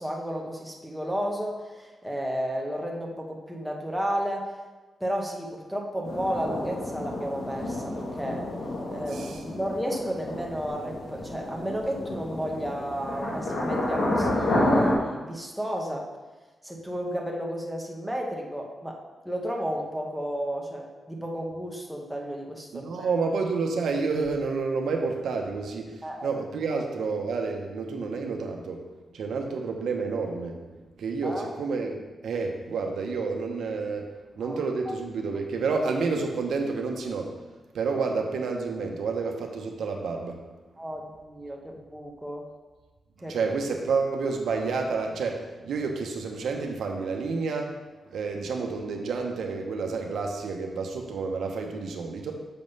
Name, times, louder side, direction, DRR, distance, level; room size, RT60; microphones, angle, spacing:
voice 1, 0.0-4.5 5.0-8.5 8.9-16.1 16.6-19.0 19.2-23.1 26.0-26.4 26.7-26.8 31.2-31.5 34.4-34.6 34.9-35.0 40.8-42.5 43.2-43.4, equal, 5° right, 0 dB, 1.0 m, -33 dB
sound 1, 6.0-14.9, left 1 dB, 75° left, 2.0 m, -30 dB
voice 2, 22.7-28.8 29.1-30.6 31.0-34.1 34.4-37.3 37.7-40.4 43.3-47.7 48.1-52.3, right 4 dB, 90° right, 2 dB, 1.0 m, -29 dB
6.9 x 5.3 x 5.4 m, 1.2 s
wide cardioid pair, 150°, 0 cm